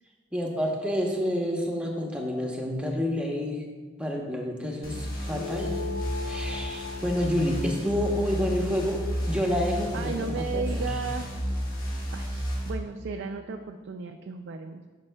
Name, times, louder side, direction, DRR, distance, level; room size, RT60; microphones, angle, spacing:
voice 1, 0.3-3.7 4.0-5.8 6.2-10.8, equal, 5° right, 0 dB, 0.8 m, -29 dB
sound 1, 4.8-12.7, equal, 45° left, 1.3 m, -32 dB
sound 2, 5.3-10.1, left 4 dB, 80° left, 0.4 m, -39 dB
voice 2, 9.9-11.3 12.1-14.8, right 4 dB, 60° right, 5 dB, 0.3 m, -35 dB
11.5 x 5.4 x 2.2 m, 1.4 s
head